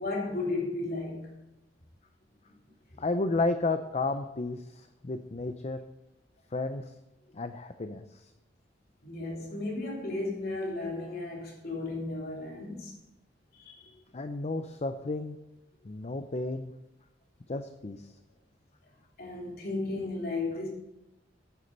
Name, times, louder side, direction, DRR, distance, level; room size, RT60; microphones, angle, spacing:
voice 1, 0.0-1.4 9.0-13.0 13.5-13.8 19.2-20.7, left 2 dB, 55° left, 3.2 m, -34 dB
voice 2, 3.0-5.8 6.5-6.9 7.3-8.3 14.1-15.4 15.8-16.7 17.5-18.1, left 3 dB, 35° left, 0.6 m, -32 dB
9.8 x 9.5 x 5.3 m
head